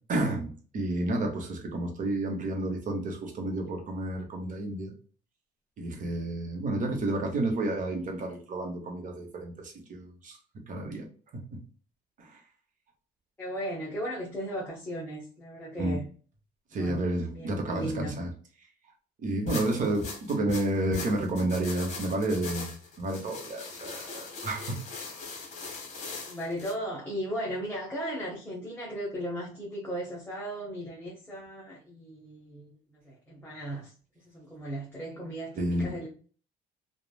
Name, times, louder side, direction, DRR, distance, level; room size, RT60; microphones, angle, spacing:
voice 1, 0.1-4.9 5.8-10.4 10.7-11.0 11.5-11.6 12.2-12.4 15.8-16.0 16.7-18.3 19.2-24.8 35.6-35.9, right 2 dB, 50° right, 1.0 m, -31 dB
voice 2, 13.4-16.1 16.7-17.0 17.3-18.1 26.2-36.1, equal, 10° left, 0.9 m, -36 dB
sound 1, 19.5-26.7, left 4 dB, 45° left, 1.1 m, -40 dB
3.2 x 2.3 x 2.3 m
cardioid pair, 110°, 17 cm